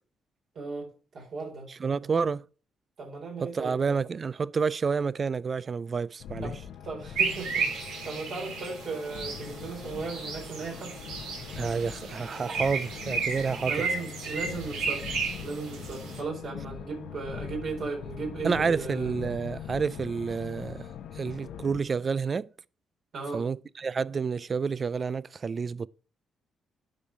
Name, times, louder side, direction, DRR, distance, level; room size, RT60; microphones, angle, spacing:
voice 1, 0.5-1.7 3.0-3.8 6.4-6.6 6.8-7.7 8.0-10.9 11.2-11.6 13.6-15.1 15.4-19.1 23.1-23.4, right 4 dB, 65° right, 4.2 m, -36 dB
voice 2, 1.7-2.4 3.4-6.5 11.6-13.8 18.4-20.9 21.1-22.5 23.3-25.9, right 5 dB, 40° right, 0.3 m, -29 dB
sound 1, 6.2-21.8, left 9 dB, 75° left, 0.8 m, -42 dB
sound 2, 7.1-16.2, right 5 dB, 90° right, 4.1 m, -33 dB
12.0 x 5.5 x 4.5 m
cardioid pair, 90°, 0 cm